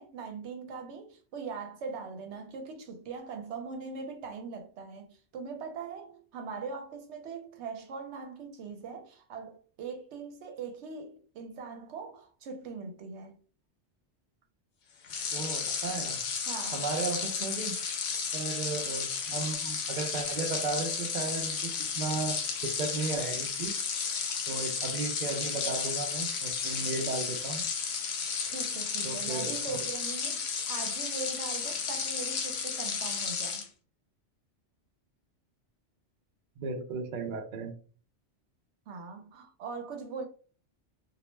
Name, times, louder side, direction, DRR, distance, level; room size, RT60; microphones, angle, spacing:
voice 1, 0.0-13.4 16.5-16.9 28.5-33.7 38.9-40.3, right 4 dB, 75° right, 0.9 m, -41 dB
sound 1, 15.0-33.7, left 6 dB, 65° left, 0.8 m, -33 dB
voice 2, 15.3-16.2 16.7-17.8 18.3-21.7 21.9-23.8 24.5-27.6 29.0-29.9 36.6-37.7, right 3 dB, 60° right, 0.5 m, -35 dB
2.3 x 2.0 x 3.1 m
omnidirectional pair, 1.2 m